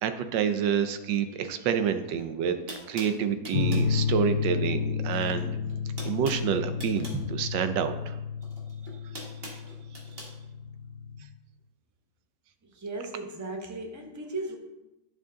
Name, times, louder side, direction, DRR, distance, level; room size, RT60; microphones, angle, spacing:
voice 1, 0.0-2.6 2.9-5.6 6.0-8.2, right 8 dB, 85° right, 9 dB, 1.4 m, -28 dB
sound 1, 2.2-2.3 2.7-3.9 5.1-5.4 5.7-7.2 8.4-10.3, equal, 35° right, 1.7 m, -43 dB
sound 2, 3.5-11.2, left 6 dB, 65° left, 1.0 m, -31 dB
voice 2, 12.7-14.6, right 2 dB, 20° right, 2 dB, 0.5 m, -36 dB
11.0 x 5.0 x 3.8 m, 0.97 s
omnidirectional pair, 1.9 m